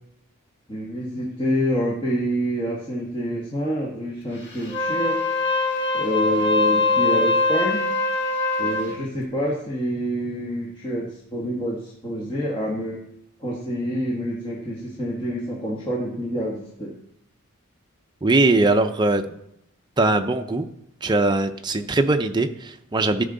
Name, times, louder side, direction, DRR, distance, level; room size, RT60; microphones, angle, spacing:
voice 1, 0.7-5.2 5.9-7.8 8.6-13.0 13.4-16.9, equal, 20° left, -4 dB, 1.3 m, -27 dB
Wind instrument woodwind instrument, 4.6-8.9, left 3 dB, 50° left, 1.8 m, -22 dB
voice 2, 18.2-19.2 20.0-20.7 21.0-23.2, right 2 dB, 20° right, 6 dB, 0.5 m, -20 dB
13.0 x 5.5 x 3.9 m, 0.76 s
head